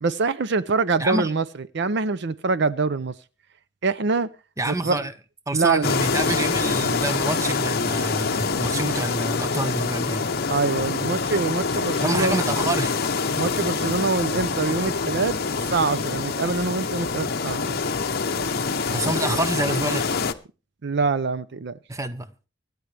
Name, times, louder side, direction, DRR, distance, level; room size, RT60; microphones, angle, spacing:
voice 1, 0.0-3.1 3.8-4.3 4.7-5.1 5.5-5.9 10.5-12.4 13.4-17.6 20.8-21.8, right 4 dB, 60° right, 0.6 m, -24 dB
voice 2, 1.0-1.3 4.6-5.1 5.5-10.2 12.0-13.0 18.9-20.0 21.9-22.3, right 2 dB, 15° right, 0.8 m, -27 dB
sound 1, 5.8-20.3, left 4 dB, 50° left, 0.8 m, -25 dB
24.5 x 9.5 x 3.4 m
head